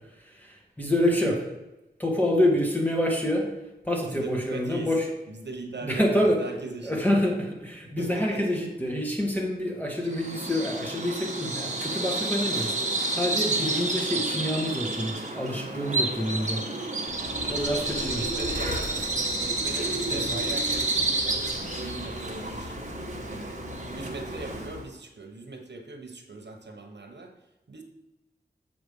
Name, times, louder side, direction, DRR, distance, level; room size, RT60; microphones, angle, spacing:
voice 1, 0.2-1.5 2.0-3.5 3.8-5.0 5.8-6.4 6.8-12.8 13.1-16.6 17.2-18.2 20.0-20.3, left 1 dB, 10° left, -1 dB, 1.8 m, -27 dB
voice 2, 4.0-4.9 5.3-7.0 8.0-8.6 17.3-17.6 18.0-19.1 19.4-22.7 23.3-27.3 27.7-27.8, right 3 dB, 75° right, 3 dB, 1.0 m, -40 dB
Bird vocalization bird call bird song, 10.1-24.9, right 2 dB, 40° right, 1.2 m, -30 dB
sound 1, 17.1-24.8, left 3 dB, 90° left, 0.9 m, -41 dB
7.6 x 5.0 x 5.4 m, 0.99 s
wide cardioid pair, 75°, 18 cm